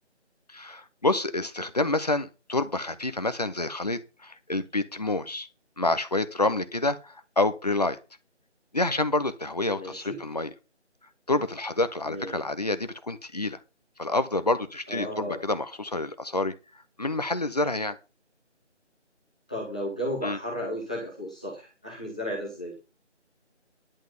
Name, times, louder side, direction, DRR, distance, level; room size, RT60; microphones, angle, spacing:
voice 1, 0.5-5.5 5.8-8.0 8.7-10.5 11.3-13.6 14.0-16.5 17.0-18.0 20.2-20.4, left 2 dB, 35° left, 11 dB, 1.0 m, -28 dB
voice 2, 9.8-10.2 12.0-12.4 14.9-15.4 19.5-22.7, equal, 5° left, -6 dB, 1.2 m, -34 dB
11.0 x 7.3 x 6.0 m, 0.30 s
figure-of-eight pair, 170°, 35 cm